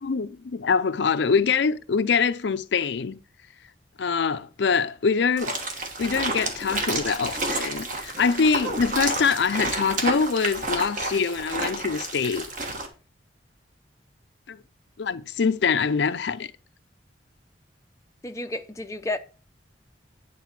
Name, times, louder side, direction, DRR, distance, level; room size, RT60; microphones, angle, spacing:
voice 1, 0.0-3.2 4.0-5.5 6.0-12.5 14.5-14.6 15.0-16.5, left 5 dB, 65° left, 0.5 m, -24 dB
sound 1, 5.4-12.9, right 2 dB, 45° right, 1.3 m, -30 dB
voice 2, 18.2-19.2, left 2 dB, 15° left, 0.5 m, -31 dB
9.2 x 4.0 x 5.9 m
head